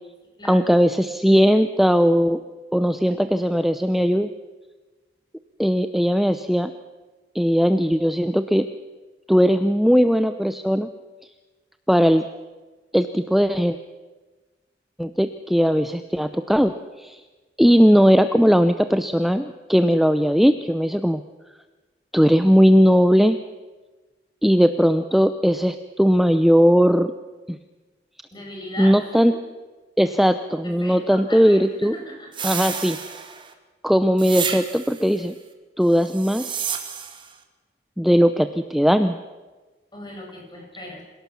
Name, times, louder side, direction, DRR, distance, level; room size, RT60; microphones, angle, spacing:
voice 1, 0.5-2.4 2.7-4.3 5.6-6.7 7.3-8.7 9.3-10.9 11.9-12.2 12.9-13.8 15.0-16.7 17.0-17.2 17.6-21.2 22.1-23.4 24.4-27.1 27.5-27.6 28.8-29.3 30.0-32.0 32.4-33.0 33.8-35.3 35.8-36.6 38.0-39.2, equal, ahead, 10 dB, 0.6 m, -18 dB
voice 2, 28.3-29.4 30.6-32.3 39.9-41.0, left 1 dB, 25° left, 0 dB, 6.6 m, -38 dB
sound 1, 32.3-33.5 34.2-35.1 36.0-37.3, right 7 dB, 30° right, 2.1 m, -30 dB
27.0 x 17.5 x 7.1 m, 1.3 s
head